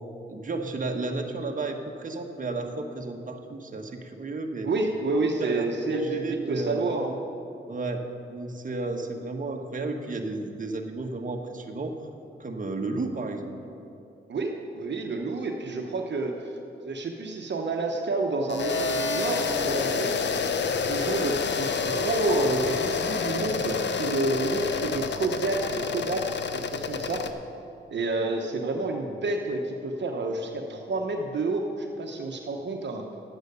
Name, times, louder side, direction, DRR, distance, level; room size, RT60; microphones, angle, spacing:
voice 1, 0.3-4.7 5.3-6.9 7.7-12.0 12.4-13.5, right 3 dB, 40° right, 3 dB, 1.2 m, -33 dB
voice 2, 4.6-7.2 14.3-16.5 16.8-20.1 20.9-27.2 27.9-33.0, right 2 dB, 60° right, 2 dB, 1.1 m, -29 dB
sound 1, 18.5-27.3, left 5 dB, 65° left, 0.7 m, -28 dB
11.0 x 8.0 x 6.8 m, 2.6 s
cardioid pair, 55°, 20 cm